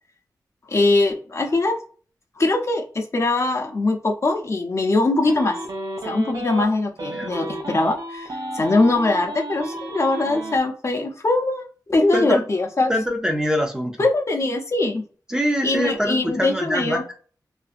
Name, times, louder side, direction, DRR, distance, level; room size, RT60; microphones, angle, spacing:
voice 1, 0.7-1.8 2.4-5.6 6.0-12.9 14.0-15.0 15.6-17.2, left 2 dB, 40° left, 2 dB, 0.5 m, -22 dB
sound 1, 5.3-6.6 7.0-10.6, right 1 dB, 65° right, 0.6 m, -32 dB
voice 2, 12.1-12.4 12.9-13.9 15.3-17.0, equal, 10° right, 3 dB, 0.6 m, -24 dB
2.4 x 2.0 x 2.5 m, 0.40 s
cardioid pair, 70°, 7 cm